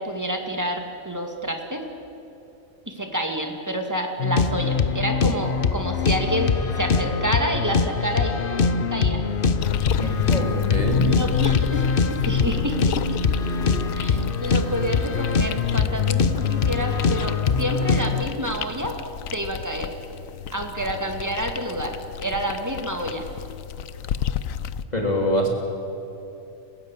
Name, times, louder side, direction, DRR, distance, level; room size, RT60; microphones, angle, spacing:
voice 1, 0.0-1.8 2.9-9.2 11.1-13.0 13.9-19.0 19.3-19.9 20.5-23.2, equal, 15° right, 3 dB, 2.4 m, -28 dB
sound 1, 4.2-18.2, left 5 dB, 45° left, 1.0 m, -23 dB
sound 2, 9.6-24.8, left 9 dB, 80° left, 1.2 m, -32 dB
voice 2, 10.0-11.1 14.1-14.2 24.9-25.5, equal, 30° left, 0 dB, 3.7 m, -25 dB
30.0 x 16.0 x 8.4 m, 2.9 s
omnidirectional pair, 1.4 m